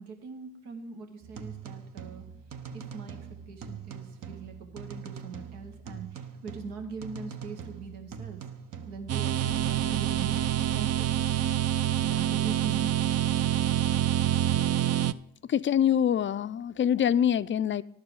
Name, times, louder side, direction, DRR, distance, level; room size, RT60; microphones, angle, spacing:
voice 1, 0.0-2.3 2.7-8.5 8.8-11.5 12.0-12.9, right 4 dB, 85° right, 1.1 m, -42 dB
sound 1, 1.2-10.5, right 6 dB, 60° right, 0.9 m, -43 dB
sound 2, 9.1-15.1, right 11 dB, 45° right, 0.4 m, -26 dB
voice 2, 15.5-17.8, left 9 dB, 35° left, 0.4 m, -25 dB
11.0 x 4.7 x 8.3 m
hypercardioid pair, 40°, 38 cm